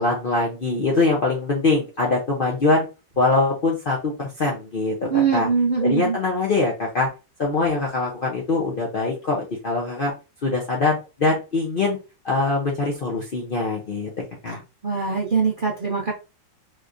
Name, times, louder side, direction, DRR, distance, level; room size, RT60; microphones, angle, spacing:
voice 1, 0.0-2.9 3.2-5.5 5.8-7.1 7.4-10.1 10.4-12.0 12.2-14.1 14.4-14.6, left 3 dB, 85° left, -2 dB, 0.4 m, -23 dB
voice 2, 5.1-6.2 14.8-16.1, right 5 dB, 90° right, -3 dB, 0.4 m, -22 dB
4.1 x 3.0 x 2.5 m, 0.30 s
omnidirectional pair, 2.1 m